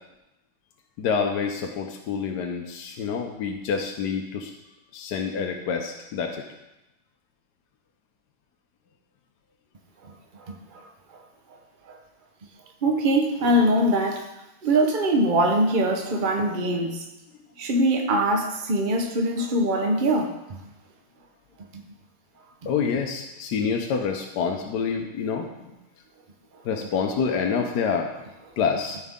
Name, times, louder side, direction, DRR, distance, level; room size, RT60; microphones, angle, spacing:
voice 1, 1.0-4.5 4.9-6.4 22.7-25.7 26.6-28.1 28.6-29.0, left 6 dB, 65° left, 2 dB, 1.1 m, -27 dB
voice 2, 12.8-14.2 14.6-17.0 17.6-20.6 21.7-21.8, right 1 dB, 55° right, 3 dB, 0.5 m, -22 dB
14.0 x 4.7 x 3.6 m, 0.95 s
omnidirectional pair, 2.3 m